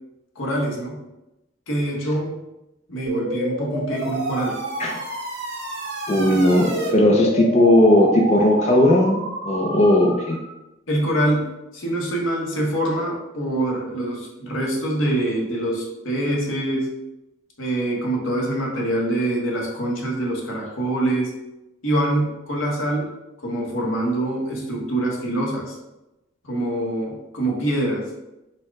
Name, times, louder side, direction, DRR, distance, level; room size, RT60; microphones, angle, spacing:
voice 1, 0.4-1.0 1.7-2.4 2.9-4.6 10.9-16.9 17.6-21.3 21.8-23.1 23.4-25.7 26.4-28.1, right 1 dB, 85° left, -2 dB, 1.1 m, -24 dB
sound 1, 3.1-10.5, right 1 dB, 75° right, 1.4 m, -29 dB
voice 2, 6.1-10.4, left 1 dB, 35° left, 0 dB, 0.4 m, -17 dB
4.4 x 2.2 x 4.6 m, 0.96 s
head